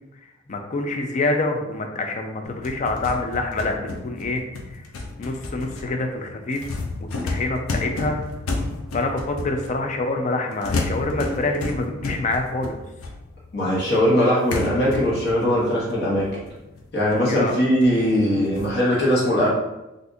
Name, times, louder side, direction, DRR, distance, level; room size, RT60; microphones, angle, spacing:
voice 1, 0.5-4.8 5.2-6.6 7.0-8.2 8.9-12.8 17.3-17.6, left 2 dB, 35° left, 4 dB, 0.4 m, -26 dB
sound 1, 2.4-10.0 10.6-13.6 14.0-14.1 14.5-17.4 17.8-17.9 18.6-18.8, left 3 dB, 90° left, 0.5 m, -31 dB
voice 2, 13.5-16.3 16.9-19.5, equal, 55° left, -5 dB, 1.1 m, -20 dB
3.5 x 2.5 x 2.6 m, 0.97 s
head